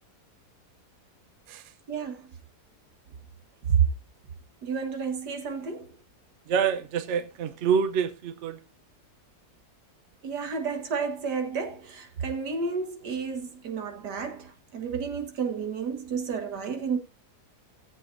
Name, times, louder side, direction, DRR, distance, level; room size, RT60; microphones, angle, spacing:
voice 1, 1.9-2.3 3.7-3.9 4.6-6.0 10.2-17.0, right 6 dB, 85° right, 2.1 m, -30 dB
voice 2, 6.5-8.6, right 7 dB, 55° right, 0.9 m, -26 dB
18.0 x 7.7 x 2.6 m
omnidirectional pair, 1.7 m